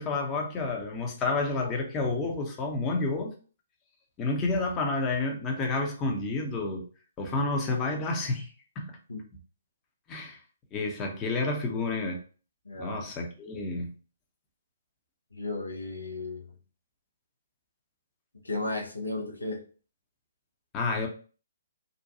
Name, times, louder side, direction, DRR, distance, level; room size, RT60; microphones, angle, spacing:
voice 1, 0.0-3.3 4.2-6.9 7.2-8.5 8.8-8.9 10.1-10.4 10.7-12.2 12.8-13.9 20.7-21.1, left 3 dB, 20° left, 0.7 m, -30 dB
voice 2, 12.6-13.0 15.3-16.5 18.4-19.6, left 2 dB, 85° left, 0.8 m, -34 dB
2.6 x 2.2 x 2.6 m
figure-of-eight pair, 130°, 0 cm